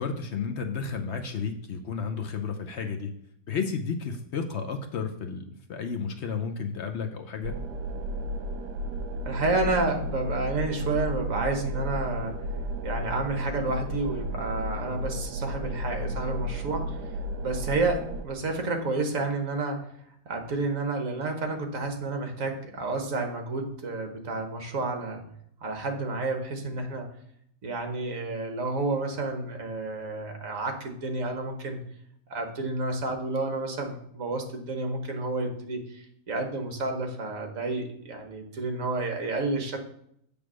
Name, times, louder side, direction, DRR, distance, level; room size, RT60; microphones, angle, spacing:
voice 1, 0.0-3.1 3.5-7.5, left 5 dB, 60° left, 6 dB, 0.7 m, -32 dB
sound 1, 7.4-18.2, right 1 dB, 80° right, 1.4 m, -33 dB
voice 2, 9.2-12.4 12.8-17.1 17.4-19.9 20.2-25.2 25.6-27.1 27.6-31.8 32.3-39.8, right 2 dB, 55° right, 4 dB, 1.5 m, -30 dB
8.0 x 3.5 x 6.2 m, 0.71 s
omnidirectional pair, 1.7 m